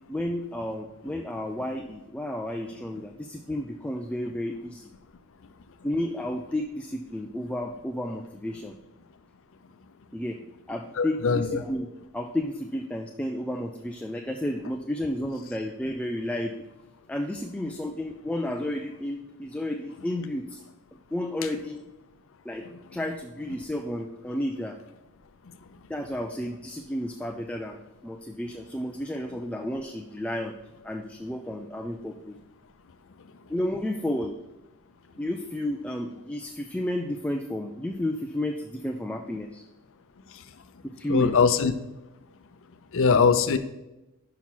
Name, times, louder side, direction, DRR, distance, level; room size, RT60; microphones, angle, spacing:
voice 1, 0.1-4.9 5.8-8.8 10.1-10.4 10.7-16.6 17.1-20.6 21.1-21.8 22.4-24.8 25.9-27.8 28.0-30.6 30.8-32.4 33.5-34.4 35.2-39.6 40.8-41.5, left 1 dB, 5° left, 3 dB, 0.4 m, -32 dB
voice 2, 11.0-11.5 41.1-41.7 42.9-43.6, left 5 dB, 65° left, 10 dB, 0.6 m, -21 dB
6.1 x 5.7 x 5.6 m, 0.99 s
head